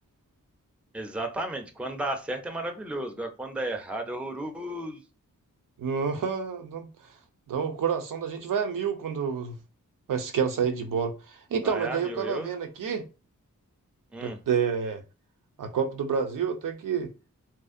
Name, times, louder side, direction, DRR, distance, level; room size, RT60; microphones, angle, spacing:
voice 1, 0.9-5.0 11.6-12.5 14.1-14.4, right 1 dB, 5° right, 0.4 m, -33 dB
voice 2, 5.8-7.2 7.5-9.6 10.1-13.0 14.2-15.0 15.6-17.1, right 6 dB, 75° right, 0.5 m, -29 dB
2.6 x 2.0 x 2.4 m
cardioid pair, 60°, 33 cm